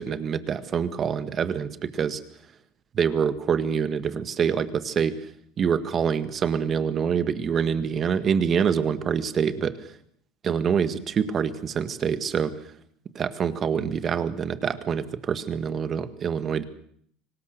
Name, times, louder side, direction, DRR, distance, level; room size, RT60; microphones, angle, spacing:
voice 1, 0.0-2.2 2.9-5.1 5.6-9.7 10.4-12.5 13.2-16.6, right 7 dB, 35° right, 12 dB, 1.8 m, -25 dB
24.5 x 19.0 x 6.7 m, 0.63 s
supercardioid pair, 115°, 0 cm